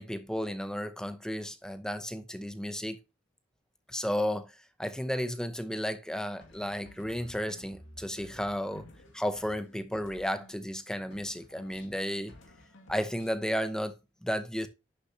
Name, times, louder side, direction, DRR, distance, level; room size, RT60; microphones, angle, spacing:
voice 1, 0.0-3.0 3.9-4.5 4.8-8.9 9.1-12.3 12.9-14.7, equal, 5° left, 0.7 m, -33 dB
sound 1, 6.4-10.8 11.1-13.5, left 1 dB, 90° left, 2.4 m, -54 dB
11.5 x 6.8 x 2.8 m
head